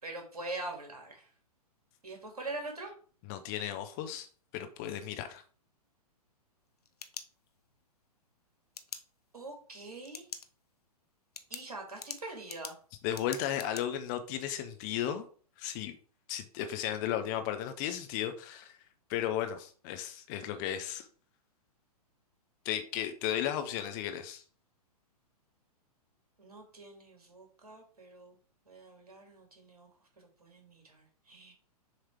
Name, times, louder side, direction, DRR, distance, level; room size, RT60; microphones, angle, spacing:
voice 1, 0.0-1.3 2.0-2.9 9.3-10.3 11.5-12.8 26.4-28.4 28.7-29.9 30.2-31.5, right 2 dB, 65° right, 2.3 m, -44 dB
voice 2, 3.3-4.3 4.5-5.4 13.0-15.3 15.6-15.9 16.3-18.7 19.1-21.1 22.6-24.4, left 10 dB, 30° left, 0.7 m, -35 dB
sound 1, 6.6-7.8 8.7-9.0 10.0-10.5 10.8-10.9 11.3-13.8, left 5 dB, 70° left, 0.7 m, -44 dB
6.8 x 3.2 x 4.5 m
figure-of-eight pair, 110°, 20 cm